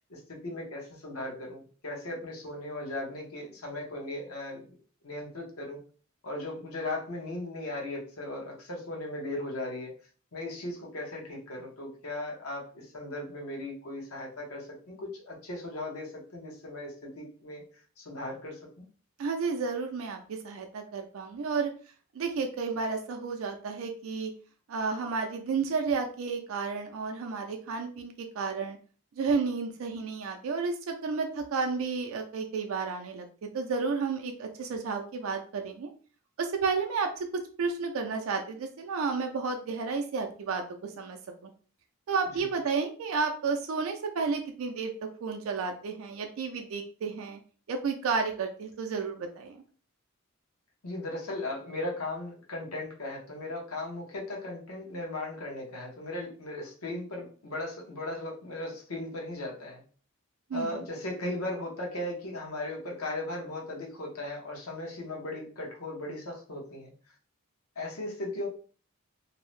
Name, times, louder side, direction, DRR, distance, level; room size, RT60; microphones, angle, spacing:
voice 1, 0.1-4.6 5.0-5.8 6.2-9.9 10.3-17.6 18.0-18.9 42.4-42.5 50.8-59.8 60.5-66.9 67.8-68.5, left 1 dB, 90° left, -1 dB, 0.9 m, -37 dB
voice 2, 19.2-21.7 22.1-24.3 24.7-28.8 29.2-33.3 33.5-35.9 36.4-37.3 37.6-41.5 42.1-47.4 47.7-49.6 60.5-60.8, right 4 dB, 70° right, 4 dB, 0.4 m, -32 dB
2.6 x 2.0 x 3.0 m, 0.41 s
head